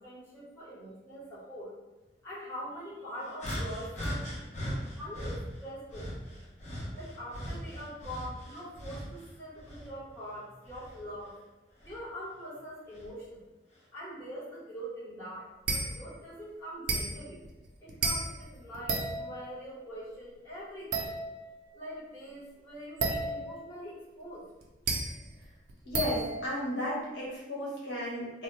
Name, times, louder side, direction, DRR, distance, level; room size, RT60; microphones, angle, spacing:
voice 1, 0.0-1.7 2.2-6.3 6.9-11.3 11.8-13.4 13.9-17.4 17.8-21.1 21.7-24.5, equal, 15° left, -11 dB, 1.1 m, -43 dB
sound 1, 3.4-5.4 5.9-9.2 9.6-11.0 11.8-12.0 12.9-13.1, equal, 40° left, 0.7 m, -39 dB
sound 2, 15.7-16.1 16.9-19.5 20.9-21.6 23.0-23.7 24.6-27.0, right 3 dB, 65° right, 0.5 m, -33 dB
voice 2, 25.8-28.4, left 1 dB, 75° left, -7 dB, 1.1 m, -34 dB
3.1 x 2.0 x 3.2 m, 1.0 s
head